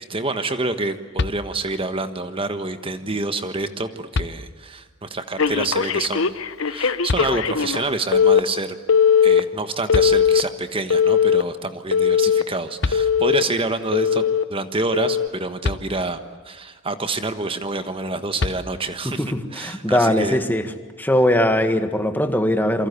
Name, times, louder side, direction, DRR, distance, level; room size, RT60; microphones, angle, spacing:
voice 1, 0.0-6.3 6.6-8.8 9.2-14.2 14.5-19.2 19.5-20.4, right 3 dB, 25° right, 9 dB, 1.4 m, -27 dB
sound 1, 1.2-1.9 3.4-3.5 4.1-4.9 7.1-7.8 9.6-9.7 9.9-10.8 12.5-12.6 12.8-13.6 15.6-16.4 18.4-19.2, left 3 dB, 55° left, 0.8 m, -29 dB
Telephone, 5.4-7.8 8.1-8.4 8.9-9.4 9.9-10.4 10.9-11.4 11.9-12.4 12.9-13.4 13.9-14.4 14.9-15.3, left 7 dB, 80° left, 1.1 m, -18 dB
voice 2, 19.2-20.7 21.0-22.9, left 1 dB, 10° left, 7 dB, 1.8 m, -20 dB
27.5 x 24.5 x 8.4 m, 1.3 s
head